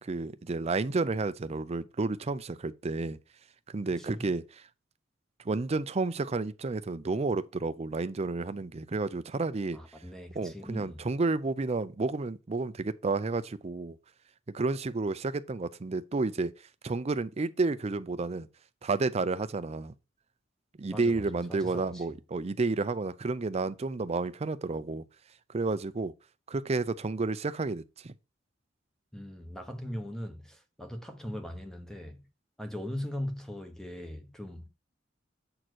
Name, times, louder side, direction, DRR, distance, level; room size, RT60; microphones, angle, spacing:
voice 1, 0.0-3.2 3.7-4.6 5.4-9.8 10.4-14.0 14.5-16.5 16.8-18.5 18.8-19.9 20.8-25.0 25.5-26.1 26.5-28.1, right 3 dB, 35° right, 0.5 m, -31 dB
voice 2, 4.0-4.3 9.7-11.0 20.9-21.2 21.5-22.0 29.1-32.2 32.6-34.7, equal, 5° left, 1.0 m, -39 dB
7.7 x 4.3 x 4.5 m
head